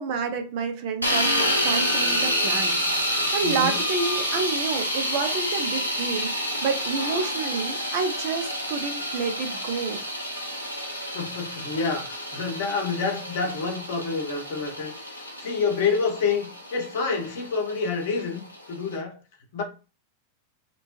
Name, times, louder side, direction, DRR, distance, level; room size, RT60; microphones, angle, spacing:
voice 1, 0.0-6.3 6.6-10.0, right 5 dB, 45° right, 0.6 m, -29 dB
sound 1, 1.0-19.0, equal, 85° left, 0.6 m, -28 dB
voice 2, 3.4-3.8 11.1-19.2 19.5-19.6, left 5 dB, 55° left, 0.8 m, -28 dB
2.9 x 2.1 x 2.9 m
figure-of-eight pair, 90°, 0 cm